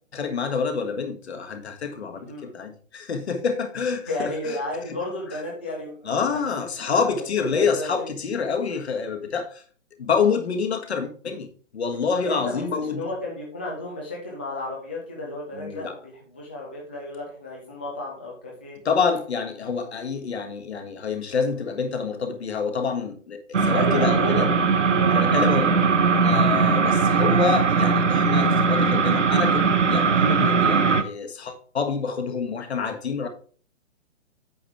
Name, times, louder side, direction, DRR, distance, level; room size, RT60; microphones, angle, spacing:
voice 1, 0.1-4.6 6.0-9.6 10.0-13.1 15.5-16.0 18.8-24.5 25.1-25.7 26.2-33.3, left 5 dB, 55° left, 1.6 m, -27 dB
voice 2, 2.1-2.5 4.1-6.4 6.9-7.1 7.4-8.0 12.2-18.8 23.7-24.5 24.9-25.7, left 2 dB, 10° left, 0.4 m, -33 dB
sound 1, 23.5-31.0, right 5 dB, 70° right, 0.9 m, -20 dB
8.5 x 6.3 x 3.5 m
figure-of-eight pair, 130°, 38 cm